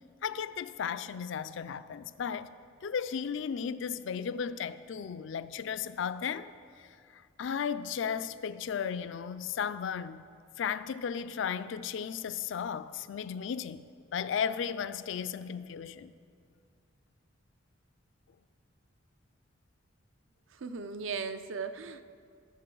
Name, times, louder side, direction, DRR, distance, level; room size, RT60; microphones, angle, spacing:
voice 1, 0.2-2.6 2.8-6.5 6.8-6.9 7.1-10.2 10.6-16.1, left 7 dB, 65° left, 0.3 m, -35 dB
voice 2, 20.5-22.0, right 5 dB, 75° right, 0.5 m, -37 dB
18.0 x 6.6 x 3.8 m
head